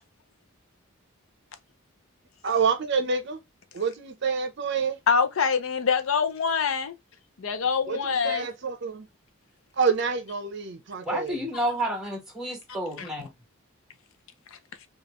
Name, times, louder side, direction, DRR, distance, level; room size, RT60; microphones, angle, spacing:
voice 1, 2.4-3.4 3.7-5.0 7.9-9.1 9.7-11.4, right 5 dB, 55° right, 0.6 m, -27 dB
voice 2, 5.1-6.9 7.4-8.5 13.0-13.3, left 6 dB, 70° left, 0.5 m, -25 dB
voice 3, 11.0-13.3, right 1 dB, ahead, 1.2 m, -30 dB
4.9 x 2.4 x 2.9 m
head